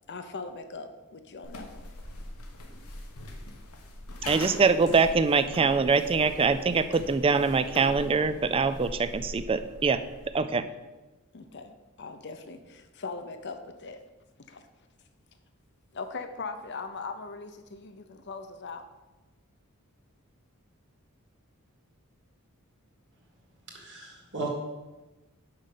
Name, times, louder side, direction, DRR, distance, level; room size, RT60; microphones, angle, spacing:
voice 1, 0.1-1.9 10.5-10.7 11.3-14.0 14.5-14.6 15.9-18.9, left 4 dB, 55° left, 8 dB, 0.7 m, -40 dB
sound 1, 1.4-10.4, left 1 dB, 90° left, 1.1 m, -42 dB
voice 2, 4.3-10.0 10.3-10.6, right 4 dB, 25° right, 12 dB, 0.3 m, -24 dB
voice 3, 23.7-24.5, right 3 dB, 55° right, -1 dB, 1.6 m, -36 dB
5.7 x 5.1 x 6.6 m, 1.1 s
head